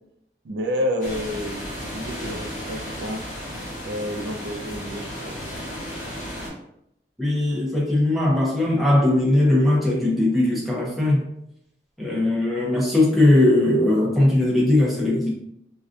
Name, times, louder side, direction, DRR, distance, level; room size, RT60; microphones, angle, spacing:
voice 1, 0.4-3.2 3.9-5.4, left 1 dB, 80° right, 4 dB, 0.4 m, -29 dB
sound 1, 1.0-6.5, equal, 45° left, 1.1 m, -34 dB
voice 2, 7.2-11.2 12.0-15.3, left 1 dB, ahead, -5 dB, 0.5 m, -19 dB
2.5 x 2.2 x 2.4 m, 0.77 s
head